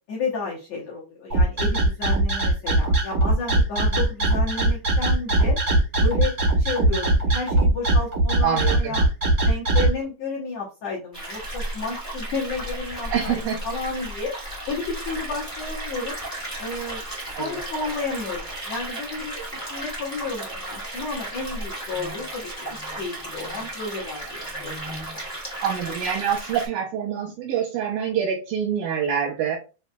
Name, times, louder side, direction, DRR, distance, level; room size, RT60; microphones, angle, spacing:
voice 1, 0.1-5.6 6.0-9.0 9.4-14.3 14.7-16.2 16.6-17.0 17.3-19.4 19.7-25.1, left 3 dB, 85° left, -5 dB, 1.5 m, -32 dB
sound 1, 1.3-9.9, right 2 dB, 55° right, 0.9 m, -20 dB
voice 2, 8.4-9.0 13.1-13.6 17.3-17.6 25.6-29.6, right 8 dB, 80° right, 0 dB, 2.0 m, -26 dB
sound 2, 11.1-26.7, right 1 dB, 15° left, 0.6 m, -34 dB
6.1 x 2.9 x 2.3 m, 0.31 s
omnidirectional pair, 4.9 m